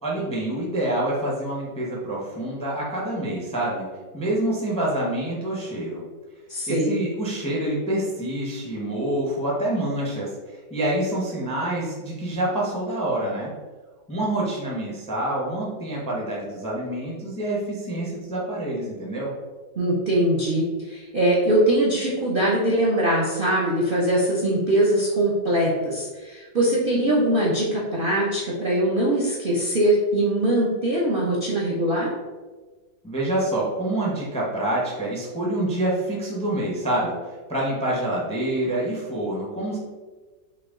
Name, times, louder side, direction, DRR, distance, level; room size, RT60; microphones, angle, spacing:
voice 1, 0.0-3.9 4.1-6.0 6.7-13.5 14.1-19.3 33.0-37.1 37.5-39.8, right 1 dB, 5° left, -5 dB, 0.5 m, -27 dB
voice 2, 6.5-7.0 19.8-32.1, right 1 dB, 55° right, -5 dB, 0.5 m, -22 dB
5.8 x 2.3 x 3.6 m, 1.3 s
omnidirectional pair, 2.0 m